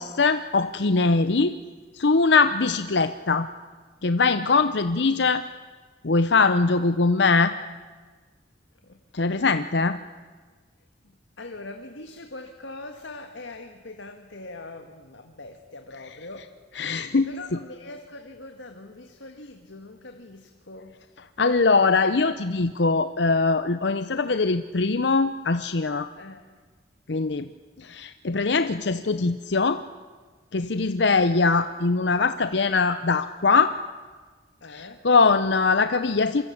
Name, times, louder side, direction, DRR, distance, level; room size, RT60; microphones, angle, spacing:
voice 1, 0.0-1.6 1.9-3.5 4.0-5.4 6.0-7.5 9.1-10.0 16.8-17.3 21.4-26.1 27.1-27.5 27.8-29.8 30.5-33.8 34.7-36.4, left 4 dB, 70° left, 11 dB, 0.8 m, -22 dB
voice 2, 11.0-16.6 17.2-21.0 26.2-26.5 34.6-35.1, left 2 dB, 85° left, 5 dB, 1.8 m, -42 dB
27.0 x 24.0 x 8.7 m, 1.5 s
head